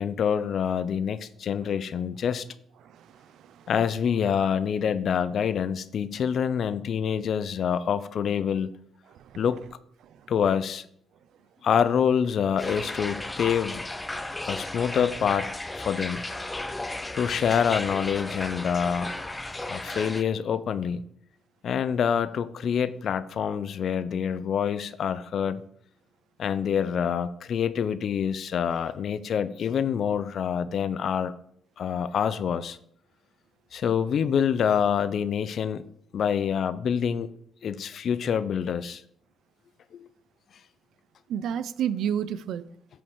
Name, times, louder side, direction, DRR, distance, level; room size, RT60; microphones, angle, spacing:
voice 1, 0.0-2.5 3.7-8.7 9.4-9.6 10.3-10.8 11.6-13.8 14.4-15.5 15.8-16.3 17.1-19.1 19.7-21.1 21.6-25.6 26.4-31.3 31.8-32.8 33.7-35.8 36.1-37.3 37.6-39.0 39.9-40.0, left 7 dB, 60° left, 0.5 m, -26 dB
voice 2, 2.8-3.7 9.1-9.4 41.3-42.7, right 9 dB, 75° right, 0.4 m, -31 dB
sound 1, 12.6-20.2, left 2 dB, 15° left, 0.6 m, -34 dB
8.6 x 5.3 x 4.7 m
cardioid pair, 90°, 0 cm